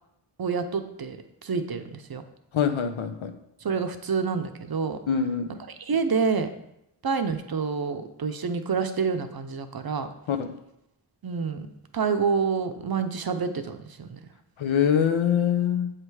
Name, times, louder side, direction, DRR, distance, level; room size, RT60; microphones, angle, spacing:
voice 1, 0.4-1.2 1.4-2.2 3.6-5.0 5.8-6.5 7.0-10.1 11.2-11.7 11.9-14.2, right 5 dB, 50° right, 8 dB, 0.6 m, -27 dB
voice 2, 2.5-3.4 5.1-5.6 10.3-10.5 14.6-15.9, left 8 dB, 70° left, 8 dB, 0.7 m, -24 dB
7.3 x 3.3 x 4.7 m, 0.82 s
cardioid pair, 40°, 49 cm